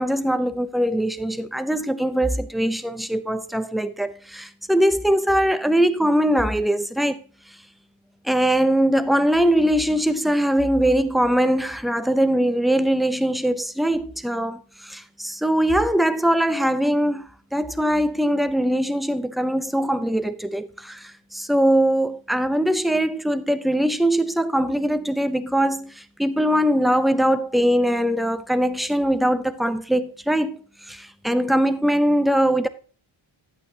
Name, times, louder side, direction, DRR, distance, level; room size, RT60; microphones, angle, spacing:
voice 1, 0.0-7.2 8.2-32.7, equal, ahead, 0.6 m, -21 dB
11.5 x 8.7 x 2.8 m
cardioid pair, 100°, 50 cm